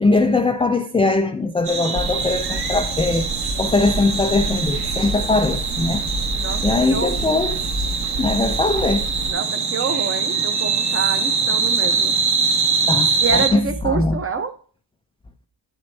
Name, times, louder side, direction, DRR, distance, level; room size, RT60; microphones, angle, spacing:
voice 1, 0.0-3.3 3.6-6.0 6.6-7.6 8.2-9.1 12.9-13.6 13.8-14.2, left 3 dB, 15° left, 0.3 m, -20 dB
sound 1, 1.6-13.5, right 5 dB, 55° right, 2.0 m, -23 dB
sound 2, 1.9-9.3, right 1 dB, 80° right, 3.5 m, -29 dB
voice 2, 6.3-7.4 9.3-12.2 13.2-14.5, right 5 dB, 30° right, 0.9 m, -27 dB
9.6 x 7.6 x 2.7 m
wide cardioid pair, 165°, 46 cm